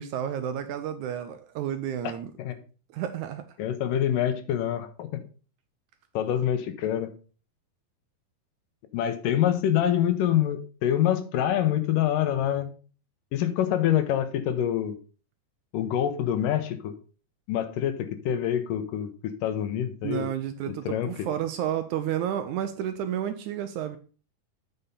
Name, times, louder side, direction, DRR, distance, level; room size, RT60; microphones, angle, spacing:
voice 1, 0.0-2.3 2.9-3.5 20.0-24.0, right 10 dB, 75° right, 9 dB, 1.9 m, -31 dB
voice 2, 3.6-5.2 6.1-7.1 8.9-12.7 13.3-15.0 15.7-17.0 17.5-20.3 20.7-21.1, left 10 dB, 80° left, 10 dB, 2.5 m, -26 dB
8.2 x 5.7 x 5.2 m, 0.37 s
omnidirectional pair, 3.9 m